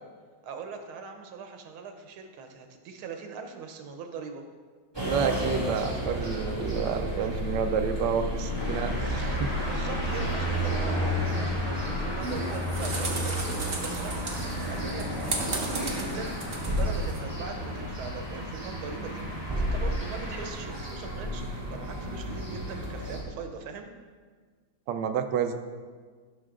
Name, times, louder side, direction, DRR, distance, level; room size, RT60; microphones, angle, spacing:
voice 1, 0.4-4.4 9.6-23.9, right 5 dB, 85° right, 5 dB, 1.8 m, -41 dB
sound 1, 4.9-23.2, equal, 10° right, 2.0 m, -32 dB
voice 2, 5.0-9.5 24.9-25.5, right 7 dB, 70° right, 6 dB, 1.2 m, -29 dB
sound 2, 8.6-20.5, left 1 dB, 35° left, 3.0 m, -37 dB
sound 3, 12.2-17.2, right 3 dB, 35° right, 1.2 m, -35 dB
16.5 x 6.0 x 3.8 m, 1.5 s
omnidirectional pair, 2.2 m